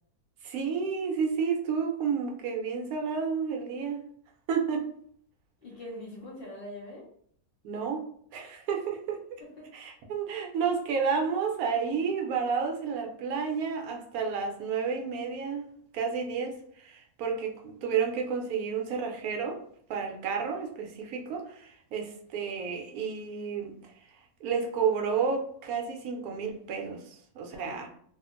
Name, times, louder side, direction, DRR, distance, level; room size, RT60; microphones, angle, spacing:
voice 1, 0.4-4.0 4.5-4.9 7.6-8.1 8.3-9.2 9.7-19.6 19.9-23.7 24.4-27.9, right 6 dB, 75° right, 2 dB, 1.0 m, -31 dB
voice 2, 5.6-7.1 9.4-9.8 27.5-27.9, left 1 dB, 45° left, -3 dB, 0.8 m, -43 dB
2.8 x 2.4 x 2.4 m, 0.62 s
omnidirectional pair, 1.6 m